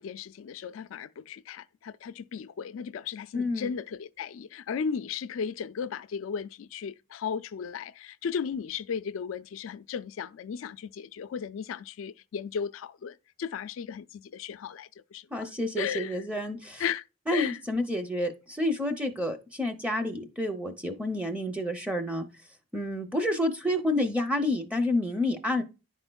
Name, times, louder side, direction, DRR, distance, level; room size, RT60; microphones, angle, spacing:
voice 1, 0.0-15.5 15.8-16.2 16.8-17.0 17.3-17.6, left 7 dB, 80° left, 0.3 m, -35 dB
voice 2, 3.3-3.7 15.3-16.8 17.3-22.3 22.7-25.6, left 1 dB, 5° right, 0.5 m, -29 dB
10.5 x 4.3 x 2.2 m
head